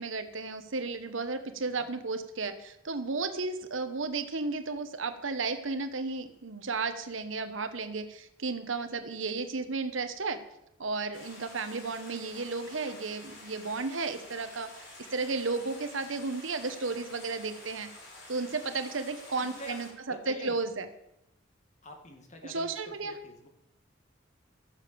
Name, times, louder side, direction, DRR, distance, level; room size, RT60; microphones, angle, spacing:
voice 1, 0.0-10.4 10.8-17.9 18.3-20.9 22.5-23.1, right 3 dB, 80° right, 9 dB, 1.2 m, -33 dB
Stream, 11.1-19.9, left 2 dB, 65° left, 4.7 m, -49 dB
voice 2, 19.4-19.8 20.1-20.6 21.8-23.5, equal, 35° left, 4 dB, 2.2 m, -46 dB
14.0 x 7.2 x 7.0 m, 0.83 s
head